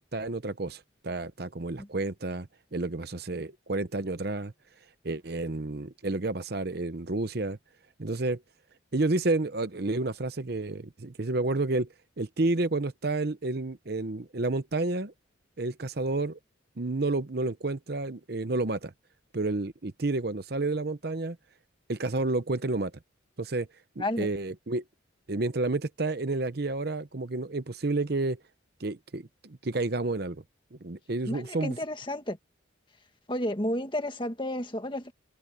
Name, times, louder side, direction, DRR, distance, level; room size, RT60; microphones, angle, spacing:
voice 1, 0.0-4.5 5.0-7.6 8.0-8.4 8.9-11.9 12.2-15.1 15.6-16.4 16.8-18.9 19.3-21.4 21.9-22.9 23.4-23.7 24.0-24.8 25.3-28.4 28.8-30.4 30.7-31.8, right 2 dB, 50° right, 0.8 m, -30 dB
voice 2, 31.3-32.4 33.3-35.1, left 1 dB, 25° left, 1.8 m, -31 dB
head